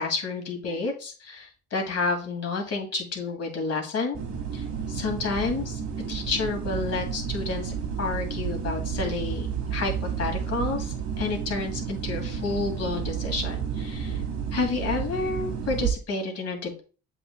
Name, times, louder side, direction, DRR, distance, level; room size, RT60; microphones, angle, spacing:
voice 1, 0.0-4.2 4.5-5.8 6.1-14.2 14.5-16.8, left 3 dB, 55° left, 3 dB, 2.3 m, -30 dB
sound 1, 4.1-15.9, right 7 dB, 65° right, 1.6 m, -31 dB
7.5 x 6.2 x 2.2 m, 0.36 s
cardioid pair, 90°, 30 cm